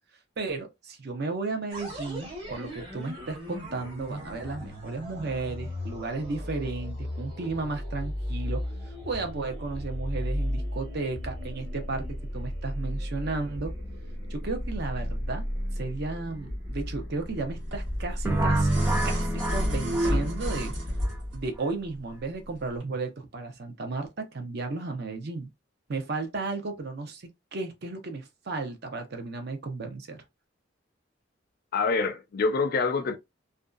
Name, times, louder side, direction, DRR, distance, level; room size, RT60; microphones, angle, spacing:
voice 1, 0.4-13.7 14.3-15.5 15.8-18.8 19.0-20.7 21.3-25.5 25.9-30.2, right 3 dB, 55° right, 0.6 m, -34 dB
sound 1, 1.7-20.9, equal, 30° right, 1.1 m, -35 dB
sound 2, 17.7-21.5 22.7-22.8, equal, 80° right, 1.4 m, -30 dB
sound 3, 18.3-21.1, right 2 dB, 10° right, 0.5 m, -28 dB
voice 2, 31.7-33.2, left 4 dB, 50° left, 0.4 m, -26 dB
2.5 x 2.2 x 2.4 m
head